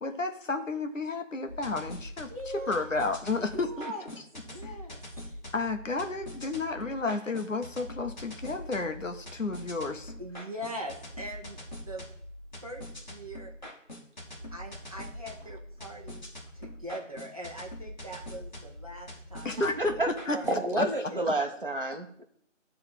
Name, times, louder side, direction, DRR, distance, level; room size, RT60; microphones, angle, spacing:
voice 1, 0.0-2.3 2.7-3.9 4.6-4.7 5.5-10.1 19.4-20.0 20.3-20.4 20.8-20.9, left 3 dB, 75° left, 6 dB, 1.4 m, -31 dB
sound 1, 1.5-20.6, left 1 dB, 35° left, 2.1 m, -44 dB
voice 2, 2.3-2.9 3.4-4.0 4.4-5.4 10.2-12.0 12.6-13.5 14.5-16.3 16.5-19.9 20.3-20.5 21.1-21.2, right 1 dB, 30° right, -1 dB, 1.2 m, -41 dB
voice 3, 19.8-20.1 20.5-22.2, right 2 dB, 45° right, 4 dB, 1.3 m, -29 dB
11.0 x 3.9 x 7.4 m, 0.64 s
figure-of-eight pair, 180°, 38 cm